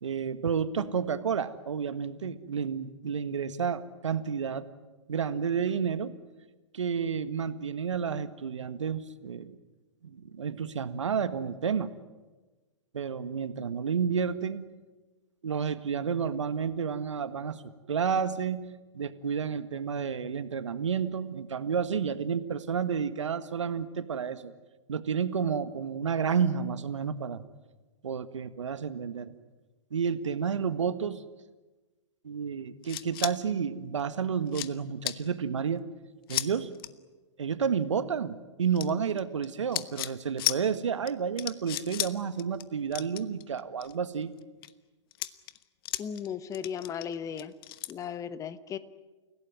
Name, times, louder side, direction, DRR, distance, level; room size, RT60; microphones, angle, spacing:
voice 1, 0.0-4.7 5.1-6.1 6.7-9.5 10.0-11.9 12.9-14.6 15.4-17.6 17.9-24.5 24.9-27.4 28.0-29.3 29.9-31.2 32.2-35.8 36.3-36.7 37.4-44.3, right 6 dB, 75° right, 12 dB, 1.7 m, -30 dB
sound 1, 32.8-33.3 34.0-34.1 34.5-34.7 35.0-35.2 36.3-36.5 36.7-36.9 38.8-39.5 39.7-40.1 40.4-40.6 41.1-41.2 41.4-42.1 42.4-42.6 42.9-43.9 44.4-44.7 45.1-46.3 46.5-47.9, left 15 dB, 50° left, 1.2 m, -33 dB
voice 2, 46.0-47.5 47.9-48.8, left 8 dB, 20° left, 14 dB, 1.2 m, -36 dB
29.0 x 17.0 x 9.7 m, 1.2 s
hypercardioid pair, 115°, 16 cm